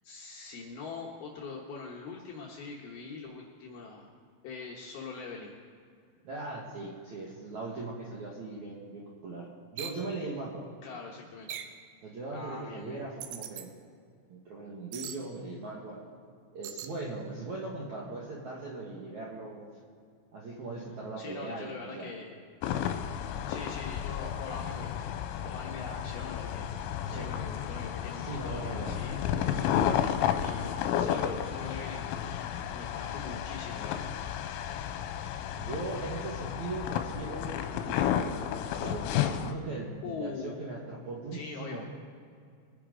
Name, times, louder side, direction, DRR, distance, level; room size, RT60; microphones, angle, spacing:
voice 1, 0.0-4.1 4.4-5.6 10.8-11.6 12.3-13.0 21.2-22.3 23.5-26.7 27.1-29.7 30.4-32.4 32.7-34.1 40.0-40.8 41.3-41.9, left 4 dB, 70° left, -1 dB, 2.4 m, -43 dB
voice 2, 6.2-9.5 9.7-10.7 12.0-13.7 14.3-16.0 16.5-19.7 20.3-22.1 27.0-27.3 28.1-29.0 35.6-38.4 38.8-41.8, right 3 dB, 65° right, -4 dB, 1.9 m, -39 dB
sound 1, 9.8-10.0 11.5-11.8 13.2-13.7 14.9-15.2 16.6-16.9, right 10 dB, 80° right, 2.8 m, -40 dB
sound 2, 22.6-39.5, left 9 dB, 85° left, 3.2 m, -32 dB
23.0 x 10.0 x 3.8 m, 2.2 s
omnidirectional pair, 5.7 m